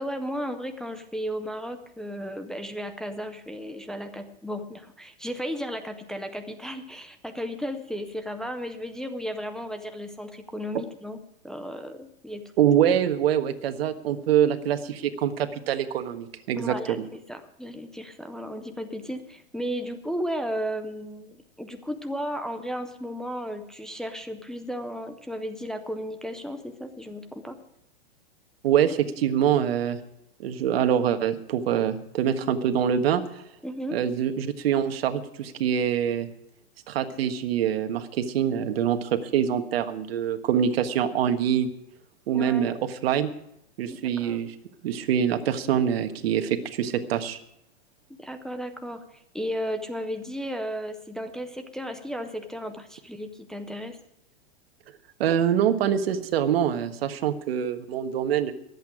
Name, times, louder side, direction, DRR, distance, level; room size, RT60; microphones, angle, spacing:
voice 1, 0.0-11.2 11.4-12.4 16.6-17.0 17.3-27.6 33.6-34.0 42.3-42.8 43.9-44.4 48.2-54.0, equal, ahead, 5 dB, 0.4 m, -34 dB
voice 2, 12.6-17.0 28.6-30.0 30.4-33.2 33.9-36.3 36.9-41.7 42.3-43.3 43.8-44.5 44.8-47.4 55.2-58.5, right 9 dB, 70° right, 7 dB, 1.5 m, -24 dB
23.0 x 8.3 x 4.9 m, 0.76 s
supercardioid pair, 150°, 32 cm